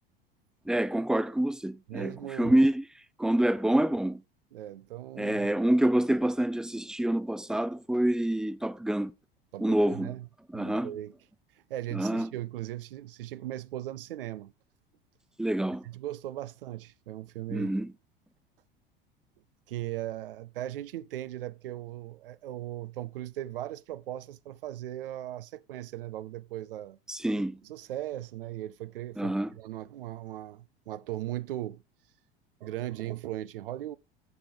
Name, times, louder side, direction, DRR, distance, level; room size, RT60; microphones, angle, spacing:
voice 1, 0.7-2.8 3.2-4.2 5.2-9.1 9.6-10.1 10.5-10.9 11.9-12.3 15.4-15.8 17.5-17.9 27.1-27.6 29.2-29.5, right 1 dB, ahead, 0.6 m, -27 dB
voice 2, 1.9-2.6 4.5-5.6 9.5-10.3 10.5-11.1 11.7-14.5 15.8-17.7 19.7-27.0 27.6-31.8 32.6-34.0, right 14 dB, 70° right, 0.6 m, -38 dB
8.0 x 6.8 x 5.2 m
figure-of-eight pair, 75°, 29 cm